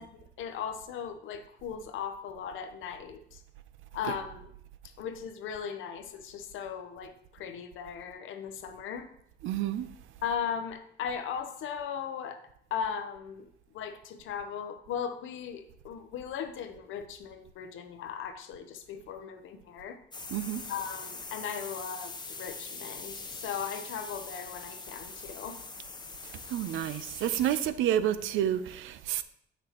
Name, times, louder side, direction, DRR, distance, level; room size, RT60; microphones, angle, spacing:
voice 1, 0.0-3.4 3.9-4.5 4.8-9.1 10.2-12.4 12.7-13.5 13.7-20.0 20.7-25.6, left 7 dB, 80° left, 0.7 m, -38 dB
voice 2, 9.4-9.9 20.3-20.6 26.5-29.2, right 11 dB, 85° right, 0.4 m, -29 dB
sound 1, 20.1-27.7, left 3 dB, 20° left, 0.8 m, -43 dB
6.8 x 6.0 x 3.0 m
cardioid pair, 90°, 20 cm